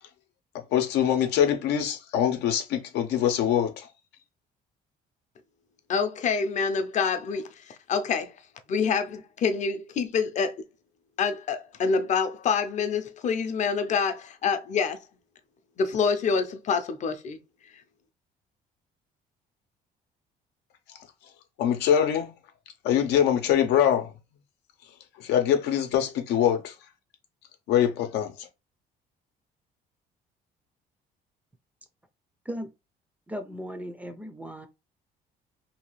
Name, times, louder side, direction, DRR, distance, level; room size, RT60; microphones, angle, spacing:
voice 1, 0.7-3.9 21.6-22.3 22.8-24.1 25.2-26.7 27.7-28.3, left 9 dB, 85° left, 0.7 m, -23 dB
voice 2, 5.9-8.3 8.7-10.6 11.2-15.0 15.8-17.4, left 5 dB, 45° left, 0.6 m, -26 dB
voice 3, 33.3-34.7, equal, 10° right, 0.4 m, -36 dB
2.8 x 2.3 x 3.1 m
cardioid pair, 110°, 17 cm